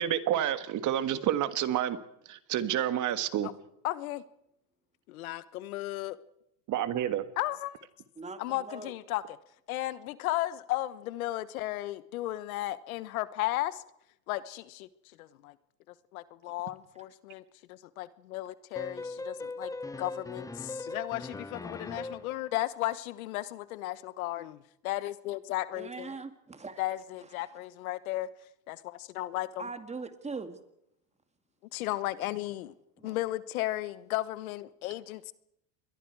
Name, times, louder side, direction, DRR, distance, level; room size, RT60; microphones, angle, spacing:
voice 1, 0.0-2.0 2.3-3.5 6.7-7.2, right 11 dB, 45° right, 1.7 m, -29 dB
voice 2, 3.8-4.2 5.1-6.2 7.4-7.9 8.4-9.4 9.7-13.8 14.3-14.9 15.2-15.5 16.1-17.4 17.7-19.7 20.0-26.1 26.8-28.3 28.7-29.7 31.7-32.7 33.0-35.3, left 16 dB, 90° left, 1.2 m, -35 dB
voice 3, 8.2-8.9 25.7-26.8 29.6-30.6 33.0-33.2, right 4 dB, 15° right, 2.2 m, -41 dB
sound 1, 18.7-22.4, left 2 dB, 10° left, 0.8 m, -39 dB
28.0 x 22.5 x 4.7 m
supercardioid pair, 110°, 41 cm